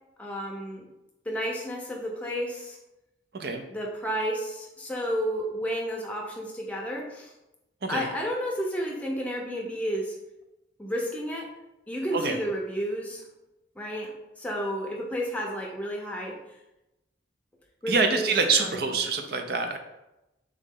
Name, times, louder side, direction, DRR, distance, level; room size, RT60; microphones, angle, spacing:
voice 1, 0.2-0.9 1.3-2.8 3.7-7.3 7.9-10.2 10.8-11.5 11.9-13.2 13.8-16.4 17.8-18.3 18.6-18.9, equal, 10° left, -1 dB, 0.6 m, -31 dB
voice 2, 17.9-19.8, right 4 dB, 60° right, 5 dB, 0.5 m, -26 dB
3.8 x 3.1 x 3.7 m, 0.95 s
head